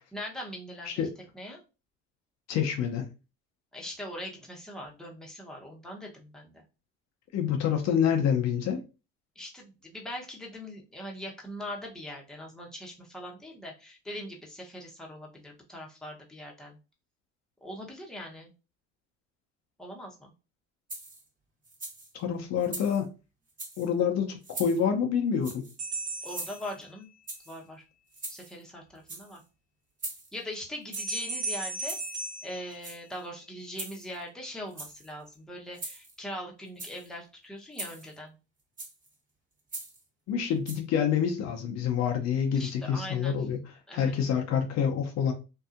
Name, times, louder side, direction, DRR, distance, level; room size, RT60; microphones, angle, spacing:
voice 1, 0.1-1.0 1.3-1.6 3.7-6.6 9.4-16.8 17.6-18.5 19.8-20.3 26.2-27.1 27.5-27.8 28.3-29.4 30.3-32.0 32.4-38.3 42.5-43.4 43.9-44.1, equal, ahead, 0.9 m, -41 dB
voice 2, 2.5-3.1 7.3-8.8 22.1-23.1 23.8-25.6 40.3-43.6 43.9-45.3, left 7 dB, 55° left, 0.7 m, -27 dB
sound 1, 20.9-21.3 21.6-22.1 22.6-23.0 23.5-23.9 24.4-24.8 25.4-25.8 26.2-26.8 27.3-27.6 28.1-28.6 29.0-29.4 30.0-30.4 30.9-31.2 31.8-32.2 32.7-33.2 33.7-34.2 34.7-35.1 35.7-36.2 36.7-37.1 37.7-38.2 38.8-39.1 39.7-40.0 40.7-40.8, right 2 dB, 25° right, 1.3 m, -41 dB
sound 2, 25.8-27.3 31.0-33.5, right 3 dB, 90° right, 1.1 m, -37 dB
2.7 x 2.3 x 2.4 m
hypercardioid pair, 70°, 33 cm